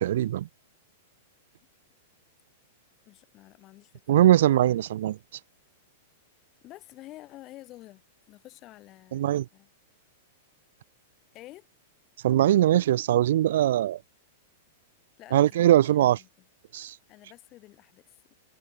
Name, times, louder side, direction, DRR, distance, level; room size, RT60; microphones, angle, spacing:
voice 1, 0.0-0.5 4.1-5.2 9.1-9.5 12.2-14.0 15.3-16.2 16.7-16.9, right 12 dB, 65° right, 0.5 m, -21 dB
voice 2, 3.1-3.9 4.3-4.8 6.6-8.0 8.3-9.3 9.5-9.7 11.3-11.7 15.2-16.3 17.1-18.1, left 17 dB, 40° left, 7.1 m, -49 dB
hypercardioid pair, 105°, 0 cm